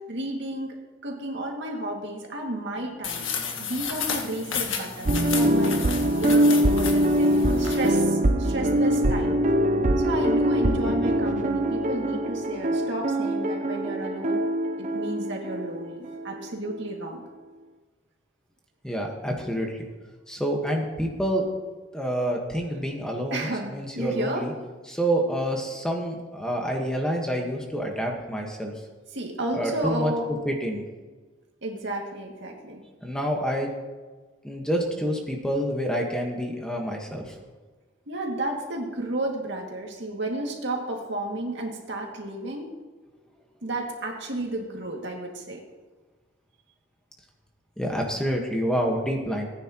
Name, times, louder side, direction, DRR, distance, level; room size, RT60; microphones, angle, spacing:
voice 1, 0.1-0.8 1.0-3.3 3.6-5.8 6.2-7.3 7.6-9.4 10.0-14.4 14.8-17.2 23.3-24.4 29.1-30.4 31.6-32.8 38.1-42.7 43.6-45.6, right 1 dB, 65° right, 0 dB, 2.2 m, -32 dB
sound 1, 3.0-8.0, left 6 dB, 90° left, 1.7 m, -32 dB
sound 2, 5.0-16.5 16.7-16.8, right 1 dB, 40° right, 0.7 m, -23 dB
voice 2, 18.8-19.9 20.3-21.4 21.9-24.5 24.9-28.7 29.5-30.1 30.4-30.8 33.0-33.7 34.4-37.4 47.8-49.5, equal, 5° left, 1 dB, 1.3 m, -28 dB
19.0 x 9.7 x 3.0 m, 1.3 s
head